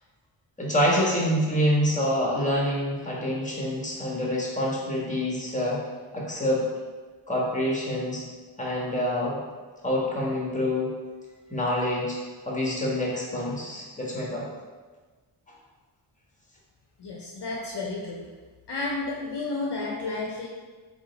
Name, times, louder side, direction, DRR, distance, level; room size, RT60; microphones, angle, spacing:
voice 1, 0.6-5.8 6.1-6.6 7.3-8.2 8.6-9.4 9.8-10.9 11.5-12.2 12.4-14.5, equal, 15° left, -4 dB, 1.5 m, -26 dB
voice 2, 17.0-18.3 18.7-20.5, left 3 dB, 55° left, -2 dB, 0.7 m, -32 dB
3.7 x 3.4 x 4.0 m, 1.4 s
cardioid pair, 55°, 48 cm